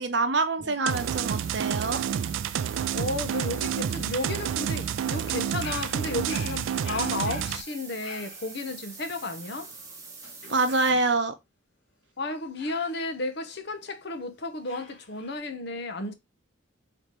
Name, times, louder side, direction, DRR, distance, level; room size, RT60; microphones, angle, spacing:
voice 1, 0.0-2.0 10.5-11.3, right 3 dB, 60° right, 0.8 m, -25 dB
sound 1, 0.8-7.6, right 9 dB, 80° right, 0.3 m, -29 dB
sound 2, 0.9-10.9, right 4 dB, 15° right, 1.1 m, -45 dB
voice 2, 2.9-9.7 12.2-16.1, left 2 dB, 55° left, 0.8 m, -33 dB
Dog, 5.4-11.2 12.6-14.0 14.6-15.4, left 4 dB, 90° left, 2.0 m, -46 dB
4.2 x 3.0 x 3.2 m
head